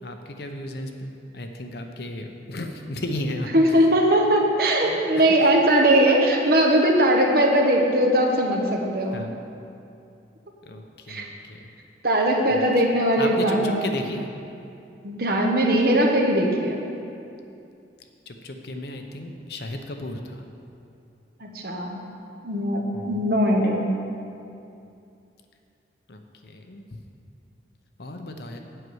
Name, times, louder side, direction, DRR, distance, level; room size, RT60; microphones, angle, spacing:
voice 1, 0.0-3.8 4.9-5.3 9.1-9.3 10.6-11.7 12.5-12.8 13.2-14.3 18.3-20.4 22.9-23.2 26.1-27.0 28.0-28.6, left 1 dB, 60° left, 4 dB, 0.8 m, -34 dB
voice 2, 3.5-9.2 11.1-11.3 12.0-13.9 15.0-16.8 21.4-22.0 22.4-23.9, right 1 dB, 55° right, 1 dB, 1.2 m, -20 dB
7.9 x 5.9 x 7.9 m, 2.6 s
head